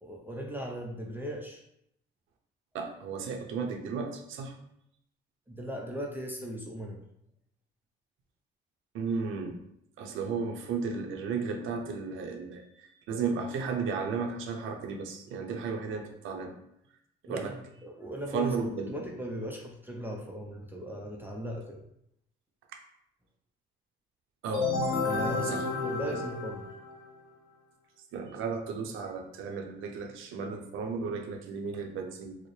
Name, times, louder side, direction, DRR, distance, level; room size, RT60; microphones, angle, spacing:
voice 1, 0.0-1.6 5.5-7.0 17.2-17.6 17.8-21.8 25.0-26.7, equal, 10° right, -1 dB, 0.5 m, -38 dB
voice 2, 2.7-4.5 8.9-9.6 10.0-16.5 17.2-17.5 18.3-19.0 24.4-24.7 25.4-25.6 26.0-26.2 28.1-32.4, right 5 dB, 85° right, 3 dB, 0.6 m, -34 dB
sound 1, 24.5-27.2, left 3 dB, 85° left, 0.7 m, -31 dB
4.4 x 2.0 x 3.1 m, 0.76 s
cardioid pair, 90°, 20 cm